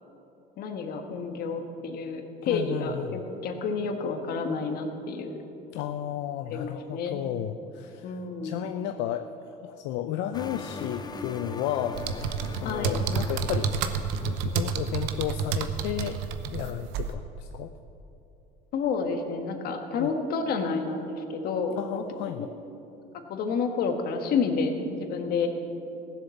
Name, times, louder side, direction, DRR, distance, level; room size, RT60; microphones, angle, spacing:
voice 1, 0.6-5.4 6.5-7.2 8.0-8.6 12.6-13.0 18.7-22.0 23.3-25.5, left 4 dB, 60° left, 5 dB, 1.5 m, -30 dB
voice 2, 2.4-3.2 5.7-9.3 9.6-12.0 12.6-13.7 14.2-16.2 16.5-17.7 20.0-20.1 21.7-22.5, left 10 dB, 80° left, 7 dB, 0.5 m, -33 dB
sound 1, 10.3-14.7, left 4 dB, 25° left, 0.7 m, -41 dB
sound 2, 11.9-17.1, right 6 dB, 90° right, 0.8 m, -30 dB
15.5 x 7.4 x 7.1 m, 2.9 s
cardioid pair, 115°, 18 cm